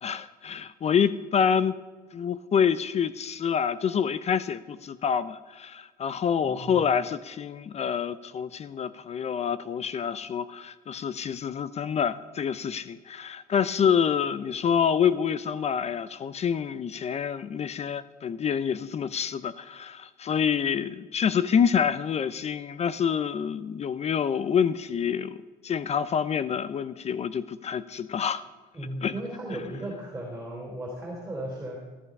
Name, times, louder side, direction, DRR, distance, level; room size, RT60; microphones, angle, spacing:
voice 1, 0.0-1.8 2.1-28.4 29.0-29.1, left 7 dB, 40° left, 16 dB, 0.5 m, -27 dB
voice 2, 6.4-6.8 28.7-31.8, right 1 dB, 10° right, -2 dB, 3.7 m, -36 dB
16.0 x 11.0 x 5.3 m, 1.4 s
cardioid pair, 110°, 17 cm